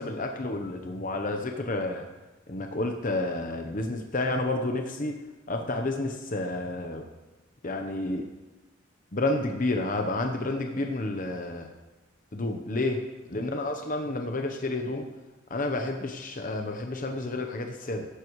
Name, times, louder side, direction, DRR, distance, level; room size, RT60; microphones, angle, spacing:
voice 1, 0.0-2.0 2.5-5.1 5.5-7.0 7.6-8.2 9.1-11.7 12.3-13.0 13.3-15.0 15.5-18.1, left 2 dB, 40° left, 3 dB, 0.9 m, -30 dB
17.0 x 13.0 x 3.1 m, 1.1 s
head